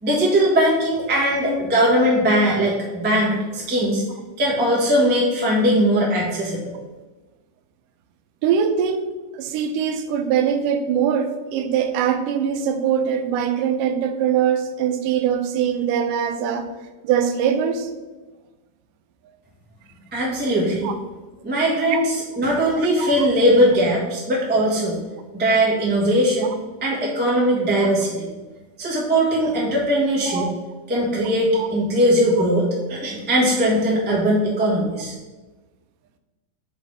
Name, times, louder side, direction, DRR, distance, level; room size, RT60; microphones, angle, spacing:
voice 1, 0.0-4.0 4.4-6.7 20.1-20.9 21.4-25.0 25.3-26.5 26.8-28.3 28.8-30.5 30.9-35.1, equal, 15° right, -6 dB, 0.3 m, -20 dB
voice 2, 8.4-9.1 9.3-16.7 17.0-17.9 20.8-20.9 21.9-22.0 23.0-23.3 27.8-27.9 30.3-30.5 31.5-31.7, right 8 dB, 90° right, 8 dB, 2.2 m, -22 dB
5.8 x 4.2 x 4.7 m, 1.2 s
omnidirectional pair, 3.7 m